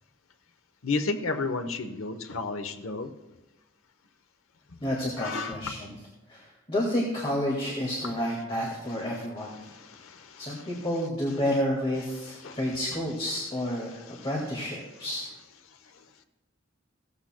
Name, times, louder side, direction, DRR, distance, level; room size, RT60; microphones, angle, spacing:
voice 1, 0.8-3.1 4.7-4.8 5.2-5.7 8.9-9.0 9.4-10.9 12.3-12.8 14.0-14.3 15.7-16.1, left 3 dB, 85° left, 8 dB, 0.8 m, -34 dB
voice 2, 4.8-5.9 6.3-9.6 10.4-15.2, left 1 dB, 25° left, -3 dB, 1.9 m, -30 dB
16.5 x 13.5 x 2.2 m, 1.0 s
head